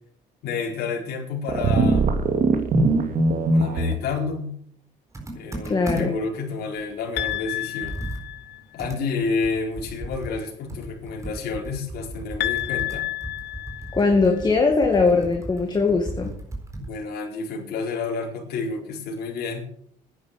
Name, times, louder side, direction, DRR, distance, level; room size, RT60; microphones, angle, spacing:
voice 1, 0.4-2.1 3.5-4.5 5.3-8.0 8.7-13.0 16.8-19.7, left 4 dB, 70° left, -2 dB, 4.3 m, -30 dB
sound 1, 1.5-3.9, right 3 dB, 55° right, 2.6 m, -20 dB
Computer keyboard, 5.1-6.3 6.7-6.8 7.1-17.0, right 2 dB, 15° right, 4.2 m, -36 dB
voice 2, 5.7-6.1 13.9-16.3, left 4 dB, 25° left, 3 dB, 2.2 m, -20 dB
sound 2, 7.2-8.8 12.4-14.4, left 16 dB, 85° left, 0.9 m, -30 dB
11.0 x 9.9 x 7.6 m, 0.65 s
cardioid pair, 110°, 17 cm